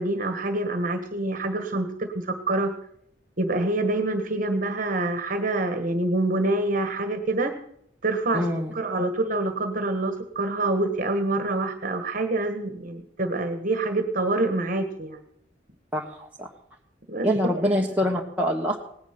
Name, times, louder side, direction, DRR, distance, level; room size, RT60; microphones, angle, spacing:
voice 1, 0.0-2.7 3.4-7.5 8.0-8.5 8.7-15.2 17.1-17.5, right 2 dB, 50° right, 7 dB, 1.5 m, -26 dB
voice 2, 8.3-8.7 15.9-16.5 17.2-18.8, equal, 10° right, -2 dB, 1.4 m, -25 dB
18.5 x 10.5 x 6.0 m, 0.72 s
head